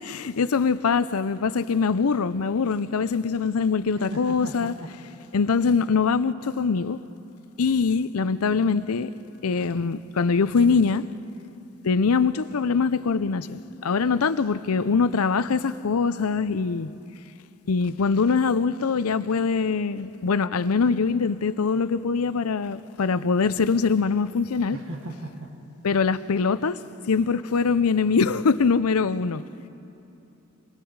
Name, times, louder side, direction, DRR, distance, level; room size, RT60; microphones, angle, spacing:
voice 1, 0.0-4.7 5.3-7.0 7.6-9.1 9.4-11.1 11.8-16.9 17.7-24.8 25.8-26.8 27.1-29.4, left 5 dB, 90° left, 0.6 m, -23 dB
voice 2, 4.0-4.9 24.7-25.5, right 1 dB, 75° right, 1.9 m, -37 dB
28.5 x 22.5 x 4.8 m
head